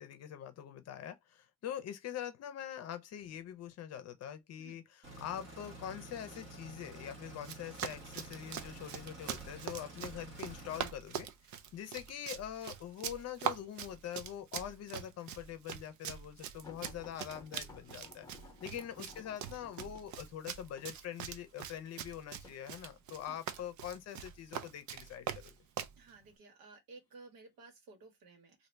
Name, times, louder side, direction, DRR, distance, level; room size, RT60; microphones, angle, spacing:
voice 1, 0.0-18.3 18.6-25.5, left 10 dB, 45° left, 0.7 m, -44 dB
sound 1, 5.0-10.8, right 2 dB, 35° right, 1.3 m, -50 dB
Run, 7.4-26.0, right 9 dB, 55° right, 0.5 m, -43 dB
sound 2, 16.6-23.4 24.2-24.6 25.6-26.2 27.0-27.1 27.5-27.6, left 4 dB, 10° left, 0.9 m, -57 dB
voice 2, 26.0-28.7, right 3 dB, 75° right, 1.5 m, -56 dB
2.8 x 2.7 x 3.2 m
cardioid pair, 170°, 34 cm